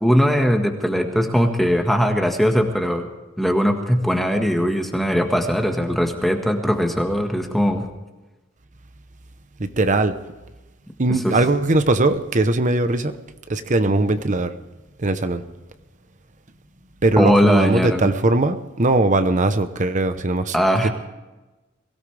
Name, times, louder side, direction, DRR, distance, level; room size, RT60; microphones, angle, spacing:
voice 1, 0.0-3.1 3.4-7.8 11.1-11.4 17.2-18.1 20.5-20.9, equal, ahead, 3 dB, 1.6 m, -20 dB
voice 2, 9.6-10.1 11.0-13.2 13.5-14.5 15.0-15.4 17.0-20.5 20.8-20.9, right 2 dB, 40° right, 10 dB, 0.9 m, -20 dB
22.5 x 17.0 x 3.4 m, 1.1 s
head